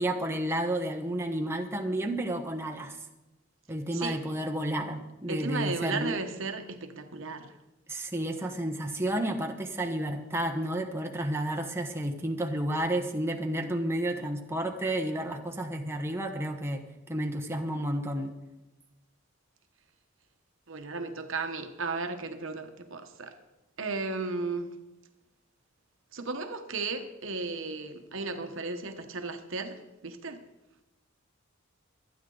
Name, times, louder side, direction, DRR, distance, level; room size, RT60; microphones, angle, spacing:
voice 1, 0.0-3.0 3.7-6.2 7.9-16.8 17.1-18.3, right 1 dB, 10° right, 1.2 m, -31 dB
voice 2, 5.3-7.6 20.7-23.4 23.8-24.7 26.1-30.4, right 3 dB, 65° right, 1.2 m, -35 dB
25.0 x 9.4 x 3.9 m
head